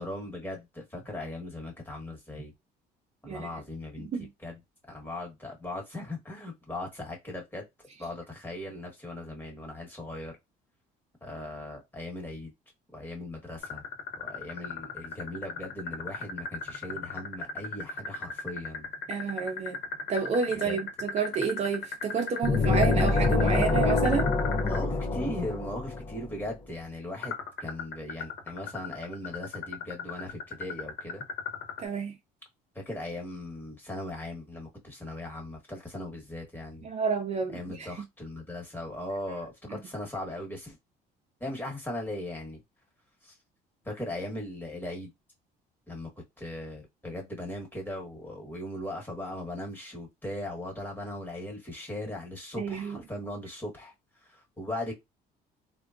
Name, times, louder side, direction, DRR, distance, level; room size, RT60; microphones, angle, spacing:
voice 1, 0.0-2.5 3.2-4.1 4.4-4.6 4.9-7.6 8.0-10.4 11.2-12.5 12.9-13.8 14.2-18.9 20.6-20.8 24.6-31.2 32.7-36.9 37.5-40.8 41.4-42.6 43.2-43.3 43.8-45.1 45.9-46.1 46.4-53.9 54.2-54.9, left 1 dB, 10° left, 1.2 m, -38 dB
sound 1, 13.6-24.8 27.2-31.9, left 5 dB, 70° left, 1.0 m, -36 dB
voice 2, 19.1-19.8 20.1-24.3 31.8-32.1 36.8-37.9 39.7-39.8 52.6-53.0, right 5 dB, 40° right, 0.6 m, -30 dB
sound 2, 22.4-26.2, left 3 dB, 30° left, 0.5 m, -26 dB
3.4 x 2.2 x 2.4 m
cardioid pair, 110°, 17 cm